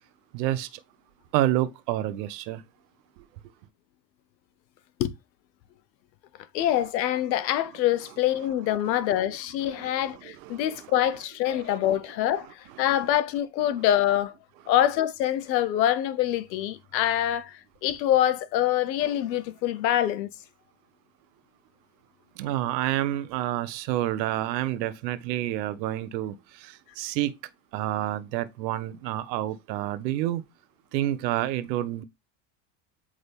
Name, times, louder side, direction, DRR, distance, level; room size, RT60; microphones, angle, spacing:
voice 1, 0.3-0.7 1.3-2.6 9.7-10.9 11.6-11.7 12.4-12.5 22.4-27.3 27.7-30.4 30.9-32.0, right 14 dB, 80° right, 1.0 m, -29 dB
voice 2, 6.5-14.3 14.7-20.3, left 12 dB, 90° left, 1.0 m, -25 dB
8.2 x 3.8 x 3.4 m
supercardioid pair, 95°, 49 cm